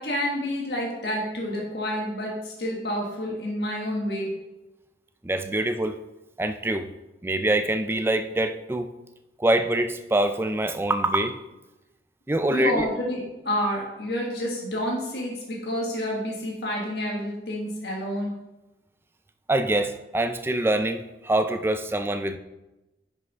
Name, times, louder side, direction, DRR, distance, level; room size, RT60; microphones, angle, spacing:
voice 1, 0.0-4.3 12.5-18.4, equal, 65° left, -2 dB, 1.5 m, -29 dB
voice 2, 5.2-6.0 6.4-6.9 7.2-8.9 9.4-11.4 12.3-12.9 19.5-22.4, right 1 dB, 15° right, 9 dB, 0.3 m, -24 dB
5.8 x 5.5 x 5.4 m, 1.0 s
head